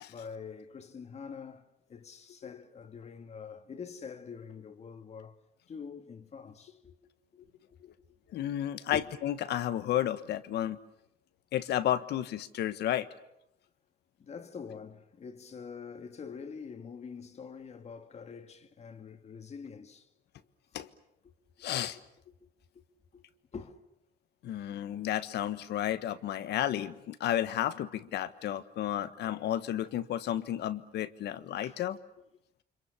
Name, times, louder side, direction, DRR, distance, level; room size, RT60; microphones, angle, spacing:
voice 1, 0.1-5.4 5.7-7.0 7.7-8.2 8.9-9.1 14.2-20.1 22.4-22.5 22.7-22.8 23.1-23.2 23.5-23.8 31.6-31.8, left 6 dB, 40° left, 1.9 m, -45 dB
voice 2, 8.3-10.8 11.5-13.1 20.7-20.9 21.6-22.0 24.4-32.0, left 11 dB, 80° left, 1.4 m, -32 dB
29.5 x 26.0 x 7.2 m
cardioid pair, 135°, 17 cm